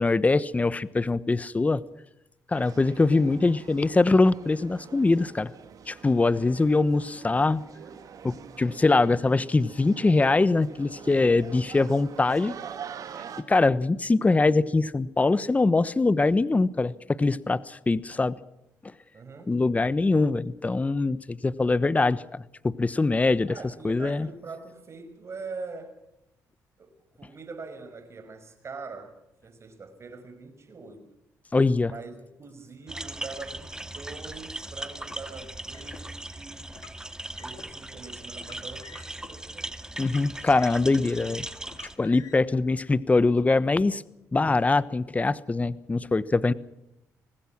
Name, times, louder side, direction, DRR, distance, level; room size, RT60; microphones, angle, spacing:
voice 1, 0.0-1.8 2.5-5.5 5.9-7.6 8.2-12.5 13.5-18.4 19.5-23.6 23.8-24.3 31.5-31.9 40.0-41.5 42.0-44.0 44.3-46.5, left 3 dB, 20° left, 1.1 m, -23 dB
sound 1, 2.5-13.4, right 7 dB, 60° right, 2.3 m, -45 dB
voice 2, 19.1-19.6 23.5-25.9 26.8-26.9 27.2-29.2 29.4-31.1 31.8-36.7 37.4-39.8 40.1-40.2, right 4 dB, 45° right, 5.8 m, -43 dB
sound 2, 32.9-41.9, right 1 dB, 10° right, 2.1 m, -39 dB
Car, 35.0-36.0 36.7-37.7 38.3-39.3 40.0-41.1 41.6-42.6, left 8 dB, 65° left, 3.1 m, -50 dB
25.0 x 19.5 x 6.1 m
cardioid pair, 75°, 7 cm